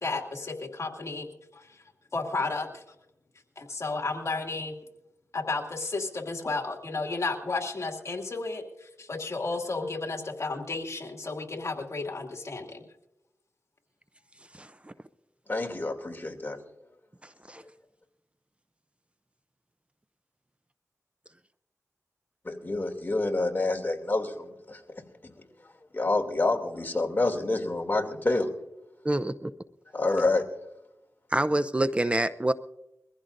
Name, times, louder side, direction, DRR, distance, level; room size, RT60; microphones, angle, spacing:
voice 1, 0.0-1.7 2.1-2.8 3.6-4.8 5.3-12.8, left 3 dB, 55° left, 2 dB, 2.4 m, -33 dB
voice 2, 15.5-16.6 22.4-24.8 25.2-25.3 25.9-28.5 29.9-30.5, left 2 dB, 35° left, 3 dB, 2.6 m, -27 dB
voice 3, 29.0-29.5 31.3-32.5, right 1 dB, 20° right, 12 dB, 0.6 m, -26 dB
22.5 x 15.0 x 2.6 m, 0.87 s
cardioid pair, 55°, 6 cm